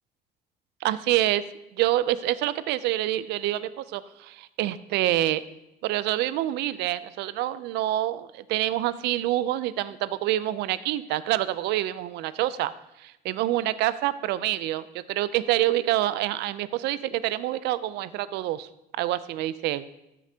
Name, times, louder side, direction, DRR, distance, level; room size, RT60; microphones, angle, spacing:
voice 1, 0.8-1.4 1.7-5.4 5.8-12.7 13.0-18.7 19.0-19.9, right 14 dB, 85° right, 16 dB, 0.4 m, -27 dB
13.0 x 6.8 x 2.8 m, 0.89 s
cardioid pair, 110°, 17 cm